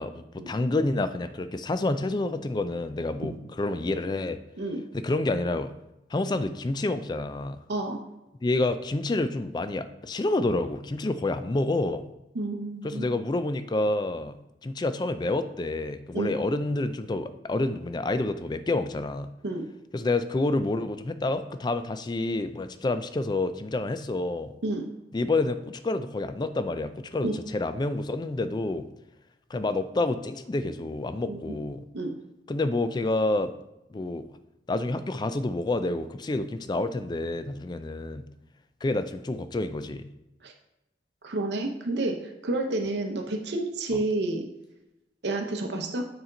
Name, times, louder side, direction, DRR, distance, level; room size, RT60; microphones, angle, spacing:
voice 1, 0.0-4.4 4.9-5.7 6.1-7.6 8.4-12.0 12.8-14.4 14.6-19.3 19.9-24.5 25.1-28.9 29.5-31.8 32.5-33.5 33.9-34.3 34.7-38.2 38.8-40.0, left 2 dB, 25° left, 11 dB, 0.3 m, -28 dB
voice 2, 7.7-8.0 12.3-13.0 16.1-16.3 19.4-19.6 24.6-24.9 27.2-27.3 31.2-31.6 31.9-32.1 40.4-40.5 41.2-44.4 45.2-46.1, right 2 dB, 75° right, 3 dB, 0.8 m, -30 dB
6.7 x 4.3 x 3.9 m, 0.91 s
head